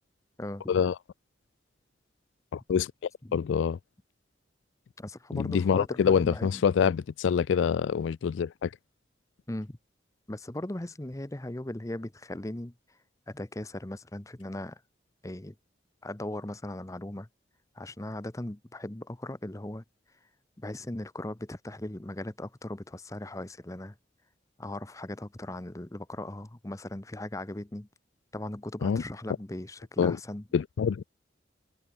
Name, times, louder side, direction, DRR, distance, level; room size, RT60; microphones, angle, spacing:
voice 1, 2.5-2.9 3.3-3.8 5.3-8.7 28.8-29.0 30.0-30.2 30.5-31.0, left 7 dB, 80° left, 0.3 m, -26 dB
voice 2, 5.0-6.6 9.5-9.8 10.3-12.7 13.3-14.8 15.2-15.5 16.0-17.3 17.7-19.8 20.6-23.9 24.6-27.9 28.3-30.4, left 1 dB, 15° left, 0.7 m, -38 dB
open air
head